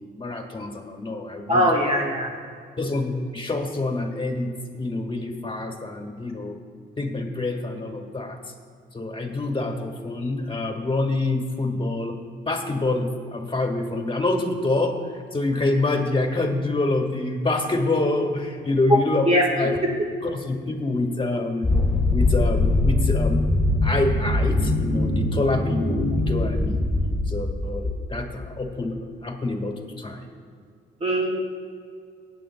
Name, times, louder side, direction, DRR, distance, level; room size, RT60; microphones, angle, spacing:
voice 1, 0.0-1.7 2.8-4.5 4.8-6.6 7.0-8.4 8.9-12.2 12.5-19.7 20.2-21.7 22.1-23.6 23.8-26.8 27.3-30.3, left 2 dB, 25° left, 3 dB, 1.6 m, -26 dB
voice 2, 1.5-2.4 19.2-19.5 19.8-19.9 31.0-31.4, equal, 30° right, -1 dB, 1.5 m, -21 dB
sound 1, 21.6-28.4, left 2 dB, 5° left, 2.1 m, -22 dB
19.0 x 9.0 x 2.3 m, 2.2 s
cardioid pair, 90°, 20 cm